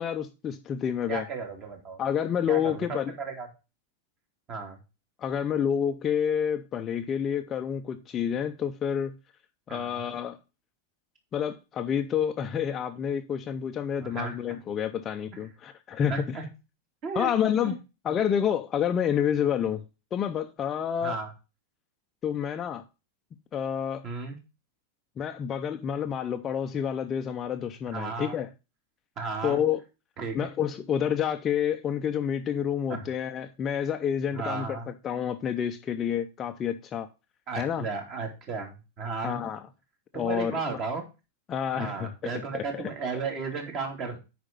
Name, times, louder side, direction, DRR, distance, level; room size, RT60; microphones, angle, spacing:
voice 1, 0.0-1.2 2.0-3.1 5.2-9.1 9.7-10.4 11.3-16.4 17.2-19.8 20.1-21.2 22.2-22.8 23.5-24.0 25.2-28.5 29.4-29.8 30.3-34.8 35.0-37.1 37.6-37.9 39.2-39.6 40.1-40.8 41.5-42.8, left 8 dB, 20° left, 0.6 m, -29 dB
voice 2, 1.1-2.0 2.5-3.5 4.5-4.8 9.7-10.1 14.0-14.4 16.1-16.4 17.0-17.3 17.6-17.8 21.0-21.3 24.0-24.4 27.9-28.4 29.2-29.6 30.2-30.5 32.9-33.0 34.3-34.9 37.5-39.5 40.1-41.0 41.7-44.2, right 4 dB, 30° right, 2.7 m, -34 dB
9.0 x 5.2 x 5.2 m
supercardioid pair, 160°, 0 cm